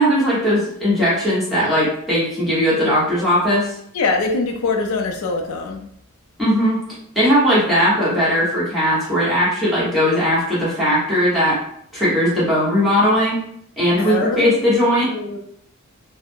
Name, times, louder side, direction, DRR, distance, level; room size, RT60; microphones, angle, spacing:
voice 1, 0.0-3.8 6.4-6.8 7.1-11.6 11.9-13.4 13.8-15.1, equal, ahead, -10 dB, 1.1 m, -18 dB
voice 2, 3.9-5.8 14.0-14.6 15.1-15.4, left 3 dB, 65° left, 3 dB, 0.4 m, -23 dB
2.3 x 2.0 x 3.4 m, 0.69 s
head